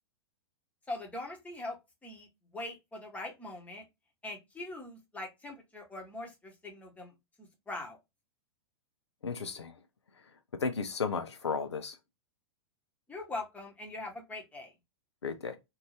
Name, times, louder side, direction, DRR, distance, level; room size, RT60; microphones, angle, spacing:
voice 1, 0.9-1.8 2.0-2.3 2.5-3.8 4.2-7.1 7.7-8.0 13.1-14.7, left 2 dB, 10° left, 1.0 m, -41 dB
voice 2, 9.2-9.7 10.6-11.9 15.2-15.6, left 5 dB, 80° left, 0.5 m, -34 dB
2.7 x 2.6 x 3.0 m
figure-of-eight pair, 100°, 14 cm